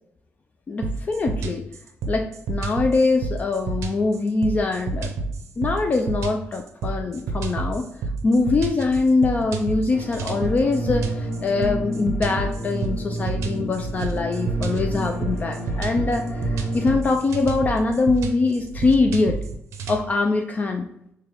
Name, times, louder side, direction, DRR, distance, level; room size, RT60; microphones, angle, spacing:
voice 1, 0.7-1.6 2.1-5.2 5.6-7.9 8.2-19.4 19.9-20.9, left 3 dB, 35° left, 4 dB, 0.3 m, -23 dB
sound 1, 0.8-20.0, right 3 dB, 90° right, 0.5 m, -29 dB
sound 2, 9.9-17.0, right 1 dB, 50° left, 0.9 m, -30 dB
3.7 x 2.2 x 3.3 m, 0.76 s
cardioid pair, 105°, 5 cm